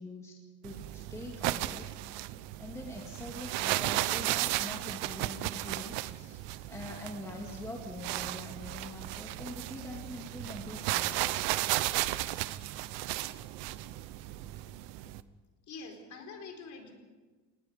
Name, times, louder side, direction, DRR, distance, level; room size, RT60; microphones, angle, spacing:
voice 1, 0.0-2.2 2.6-11.4, left 2 dB, 5° left, -1 dB, 2.2 m, -44 dB
sound 1, 0.6-15.2, right 16 dB, 75° right, 0.9 m, -35 dB
voice 2, 15.7-16.9, left 4 dB, 45° left, 4 dB, 4.3 m, -45 dB
27.5 x 19.5 x 5.2 m, 1.3 s
cardioid pair, 170°, 43 cm